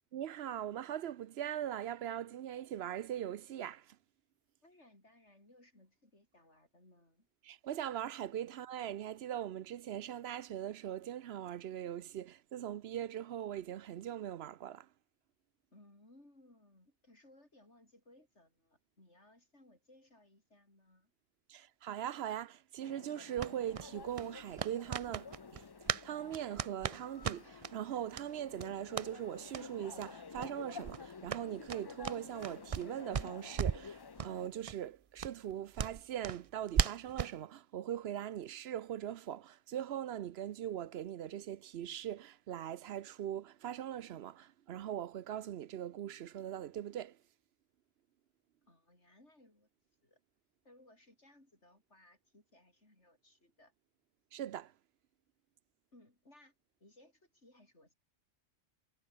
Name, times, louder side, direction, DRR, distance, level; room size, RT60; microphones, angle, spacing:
voice 1, 0.1-4.0 7.4-14.9 21.5-25.6 26.0-47.2 54.3-54.7, right 10 dB, 65° right, 0.8 m, -41 dB
voice 2, 4.6-7.3 15.7-21.1 48.7-49.7 50.0-50.2 50.6-53.7 55.9-56.5 56.8-57.9, left 1 dB, 65° left, 6.9 m, -63 dB
sound 1, 22.8-34.5, left 5 dB, 40° left, 0.3 m, -51 dB
sound 2, 23.4-26.1 26.3-27.7 28.1-28.3 28.6-29.1 29.5-29.7 30.0-30.1 30.3-30.5 30.8-32.9 33.1-33.9 34.2-34.3 34.7-34.8 35.2-37.4, right 7 dB, 45° right, 0.4 m, -37 dB
omnidirectional pair, 1.3 m